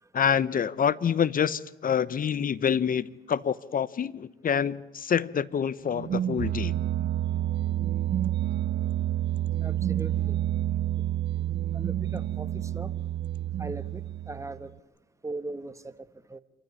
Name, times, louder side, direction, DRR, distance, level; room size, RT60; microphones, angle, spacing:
voice 1, 0.1-6.7, left 8 dB, 45° left, 20 dB, 0.9 m, -27 dB
sound 1, 5.9-14.7, right 12 dB, 60° right, 0.8 m, -29 dB
voice 2, 9.6-10.4 11.7-13.0 13.6-14.7 15.2-16.4, right 2 dB, 15° right, 13 dB, 1.3 m, -39 dB
27.5 x 14.5 x 9.6 m, 1.0 s
cardioid pair, 90°, 20 cm